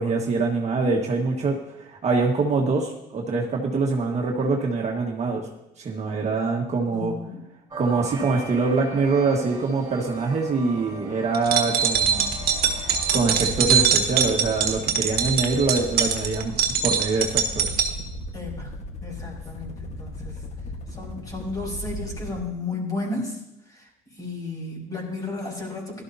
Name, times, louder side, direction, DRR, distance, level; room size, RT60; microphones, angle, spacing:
voice 1, 0.0-5.4 5.8-7.1 7.8-12.3 13.1-16.5 16.8-17.7, right 4 dB, 40° right, 0 dB, 1.6 m, -24 dB
voice 2, 6.9-7.4 18.3-18.7 19.0-20.4 20.9-23.4 23.7-23.9 24.2-26.0, left 2 dB, 20° left, -2 dB, 4.8 m, -33 dB
sound 1, 7.7-13.2, right 3 dB, 25° right, 4.1 m, -38 dB
sound 2, 11.3-17.9, right 7 dB, 65° right, 1.4 m, -22 dB
sound 3, 11.9-22.5, left 1 dB, 45° left, 1.4 m, -36 dB
16.5 x 12.5 x 2.8 m, 0.84 s
cardioid pair, 110°, 17 cm